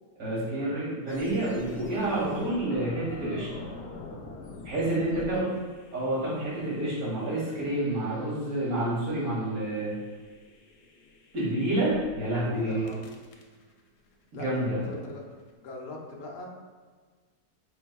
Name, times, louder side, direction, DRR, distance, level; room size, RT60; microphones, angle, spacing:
voice 1, 0.2-3.5 4.6-5.5 5.9-9.9 11.3-12.8 14.3-14.8, right 1 dB, 55° right, -8 dB, 2.0 m, -28 dB
sound 1, 1.1-12.2 12.6-15.5, left 3 dB, 75° left, 1.1 m, -47 dB
voice 2, 5.1-5.5 12.4-13.0 14.3-15.2 15.6-16.5, left 3 dB, 90° left, -1 dB, 0.5 m, -41 dB
5.2 x 3.3 x 2.3 m, 1.5 s
omnidirectional pair, 1.9 m